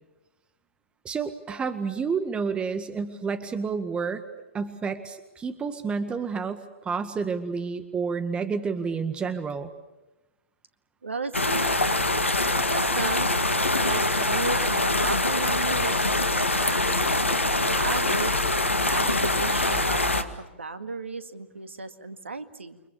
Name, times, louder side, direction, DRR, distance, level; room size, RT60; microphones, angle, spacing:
voice 1, 1.0-4.2 4.5-9.7, right 5 dB, 15° right, 10 dB, 1.8 m, -30 dB
voice 2, 11.0-11.8 12.7-13.3 13.8-16.8 17.6-18.4 18.9-22.8, right 3 dB, 75° right, 10 dB, 2.0 m, -34 dB
sound 1, 11.3-20.2, left 2 dB, 85° left, 1.9 m, -24 dB
29.5 x 24.0 x 7.1 m, 1.0 s
figure-of-eight pair, 105°, 7 cm